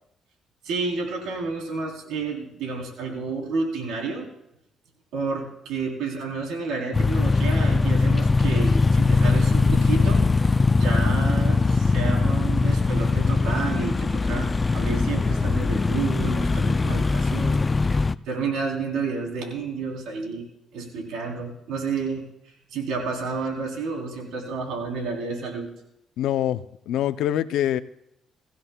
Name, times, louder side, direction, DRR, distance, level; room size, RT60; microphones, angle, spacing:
voice 1, 0.6-4.3 5.1-14.5 14.7-20.4 20.7-22.2 22.7-25.7, right 4 dB, 90° right, 0 dB, 3.7 m, -30 dB
sound 1, 6.9-18.2, left 3 dB, 25° left, 0.4 m, -21 dB
voice 2, 26.2-27.8, left 11 dB, 85° left, 13 dB, 0.5 m, -25 dB
23.0 x 15.5 x 2.3 m, 0.80 s
cardioid pair, 90°, 0 cm